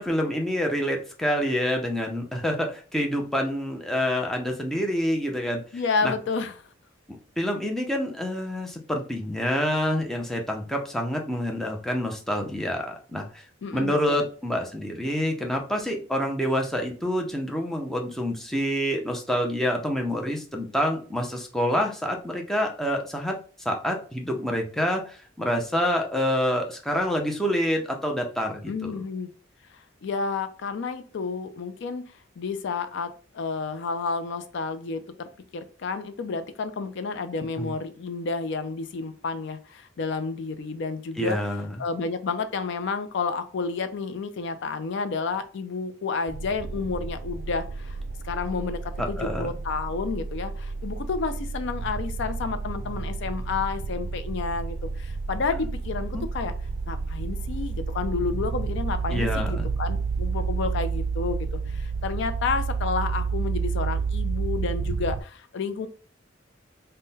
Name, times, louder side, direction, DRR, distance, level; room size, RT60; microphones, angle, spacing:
voice 1, 0.0-5.6 6.0-6.1 7.4-13.4 13.7-23.3 23.6-28.9 37.6-37.7 41.2-41.7 49.0-49.5 56.1-56.2 59.1-59.7, equal, ahead, 1 dB, 0.5 m, -27 dB
voice 2, 5.7-6.7 13.6-14.2 28.7-29.3 29.7-32.0 32.4-41.4 41.8-48.0 48.2-56.5 56.9-65.9, left 4 dB, 65° left, 10 dB, 0.4 m, -30 dB
sound 1, 46.3-65.2, right 4 dB, 80° right, 0.3 m, -30 dB
3.7 x 2.1 x 3.9 m, 0.39 s
head